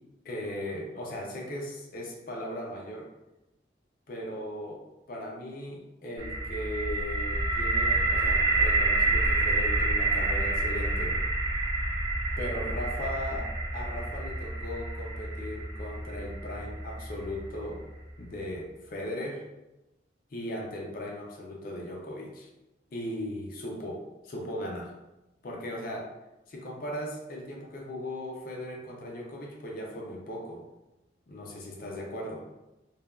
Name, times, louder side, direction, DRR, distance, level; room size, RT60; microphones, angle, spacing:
voice 1, 0.2-3.1 4.1-4.8 5.1-11.2 12.4-13.5 13.7-17.8 18.2-19.4 20.3-22.5 22.9-24.9 25.4-26.1 26.5-30.6 31.3-32.4, left 1 dB, 50° left, -1 dB, 0.5 m, -38 dB
sound 1, 6.2-18.0, right 2 dB, 20° right, 0.4 m, -28 dB
3.1 x 2.3 x 2.3 m, 0.99 s
head